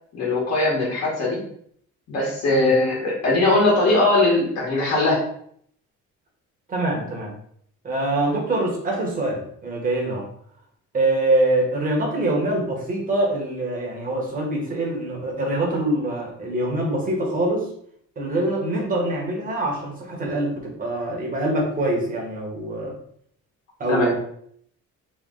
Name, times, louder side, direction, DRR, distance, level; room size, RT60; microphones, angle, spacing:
voice 1, 0.1-1.4 2.1-5.2 23.9-24.1, left 2 dB, 50° left, -5 dB, 1.4 m, -20 dB
voice 2, 6.7-7.3 7.8-10.3 10.9-17.7 18.2-22.9 23.8-24.2, right 1 dB, 25° right, -1 dB, 1.1 m, -24 dB
3.1 x 3.1 x 3.7 m, 0.64 s
cardioid pair, 160°, 31 cm